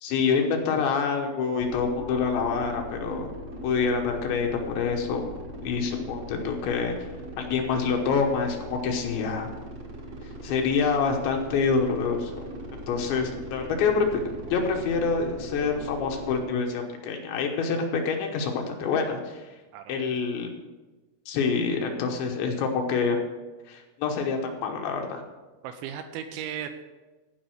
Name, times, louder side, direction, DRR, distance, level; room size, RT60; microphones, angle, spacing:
voice 1, 0.0-3.3 3.6-7.0 7.4-9.5 10.4-12.5 12.9-14.2 14.5-19.4 19.9-20.5 21.3-23.2 23.7-25.2, left 5 dB, 75° left, 3 dB, 3.1 m, -26 dB
sound 1, 1.6-16.4, right 1 dB, 55° right, 1.6 m, -40 dB
voice 2, 25.6-26.8, right 9 dB, 80° right, 7 dB, 3.0 m, -36 dB
15.5 x 5.3 x 6.3 m, 1.2 s
omnidirectional pair, 5.6 m